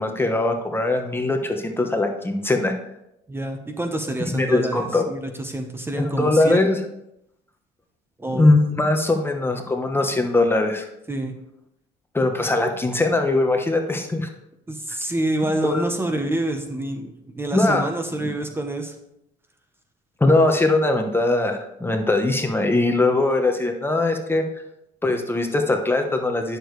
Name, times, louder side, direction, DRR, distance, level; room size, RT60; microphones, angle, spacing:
voice 1, 0.0-2.7 4.3-5.1 6.0-6.8 8.3-10.9 12.1-14.3 15.6-15.9 17.5-17.8 20.2-24.4 25.0-26.6, left 2 dB, 15° left, 4 dB, 0.9 m, -21 dB
voice 2, 3.3-6.7 8.2-8.5 11.1-11.3 14.7-18.9, right 1 dB, 15° right, 5 dB, 0.9 m, -27 dB
10.0 x 6.6 x 3.2 m, 0.82 s
cardioid pair, 110°, 17 cm